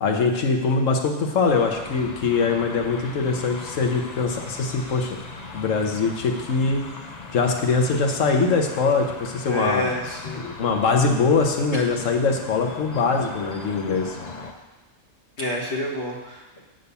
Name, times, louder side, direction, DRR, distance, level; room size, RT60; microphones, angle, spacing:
voice 1, 0.0-5.2 5.5-6.8 7.3-9.8 10.4-14.2, left 4 dB, 75° left, 3 dB, 1.3 m, -22 dB
sound 1, 1.5-14.5, left 3 dB, 40° left, 0.7 m, -39 dB
voice 2, 9.5-10.4 11.7-12.0 15.4-16.6, left 1 dB, 60° left, -2 dB, 1.8 m, -28 dB
8.0 x 3.9 x 6.8 m, 1.2 s
omnidirectional pair, 1.3 m